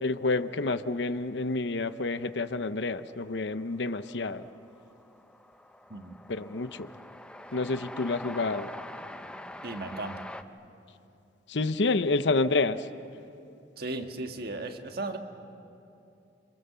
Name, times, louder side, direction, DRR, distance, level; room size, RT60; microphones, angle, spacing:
voice 1, 0.0-4.4 6.3-6.9 7.5-8.7 11.5-12.9, left 3 dB, 75° left, 12 dB, 0.8 m, -28 dB
Train, 3.0-3.1 3.3-10.4, left 1 dB, 5° left, 0.7 m, -45 dB
voice 2, 9.6-10.2 13.8-15.2, right 2 dB, 60° right, 5 dB, 1.7 m, -36 dB
29.5 x 25.0 x 6.9 m, 2.7 s
head